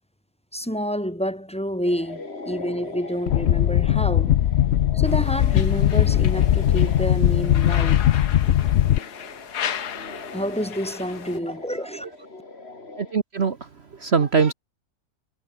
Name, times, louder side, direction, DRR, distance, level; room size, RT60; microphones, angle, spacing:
voice 1, 0.5-4.4 4.9-8.0 10.3-12.1, equal, 5° left, 5.0 m, -28 dB
sound 1, 1.8-13.1, left 3 dB, 40° left, 3.3 m, -40 dB
sound 2, 3.3-9.0, left 11 dB, 60° left, 0.7 m, -19 dB
sound 3, 5.0-11.4, left 8 dB, 90° left, 1.8 m, -36 dB
voice 2, 13.0-14.5, right 5 dB, 45° right, 1.3 m, -23 dB
omnidirectional pair, 1.6 m